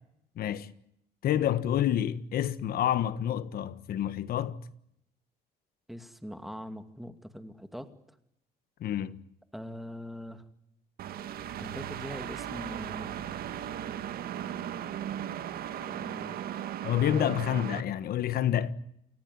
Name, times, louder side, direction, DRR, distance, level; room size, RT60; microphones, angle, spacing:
voice 1, 0.4-0.7 1.2-4.6 8.8-9.2 16.8-18.7, left 10 dB, 65° left, 1.5 m, -28 dB
voice 2, 5.9-7.9 9.5-10.4 11.6-13.3 15.7-16.4, equal, ahead, 2.4 m, -42 dB
sound 1, 11.0-17.8, right 10 dB, 65° right, 1.8 m, -37 dB
29.0 x 14.5 x 9.9 m
cardioid pair, 110°, 17 cm